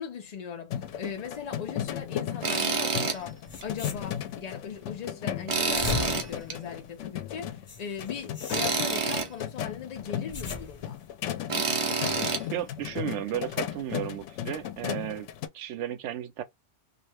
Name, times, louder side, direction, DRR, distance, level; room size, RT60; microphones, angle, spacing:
voice 1, 0.0-11.0, left 7 dB, 65° left, 0.4 m, -39 dB
sound 1, 0.7-15.5, left 10 dB, 80° left, 0.9 m, -36 dB
Tools, 2.4-3.2 3.6-3.7 5.5-6.6 8.5-9.3 11.5-12.4, right 4 dB, 40° right, 0.5 m, -27 dB
sound 2, 3.5-4.5 5.5-7.1 7.7-9.2 10.0-11.1, left 3 dB, 35° left, 0.8 m, -39 dB
voice 2, 12.5-15.3 15.5-16.4, right 11 dB, 75° right, 0.9 m, -34 dB
2.6 x 2.4 x 3.3 m
omnidirectional pair, 1.2 m